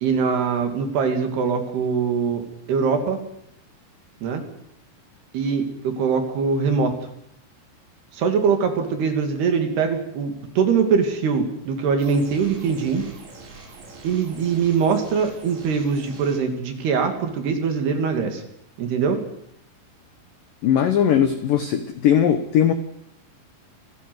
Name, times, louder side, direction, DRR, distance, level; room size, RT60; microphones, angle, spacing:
voice 1, 0.0-2.4 2.7-3.2 4.2-4.4 5.3-6.9 8.1-13.1 14.0-18.4 18.8-19.2, right 5 dB, 60° right, 5 dB, 4.2 m, -22 dB
sound 1, 12.0-16.4, right 3 dB, 85° right, 6.7 m, -44 dB
voice 2, 20.6-22.7, left 9 dB, 75° left, 9 dB, 2.0 m, -19 dB
27.0 x 15.5 x 7.9 m, 0.76 s
omnidirectional pair, 5.5 m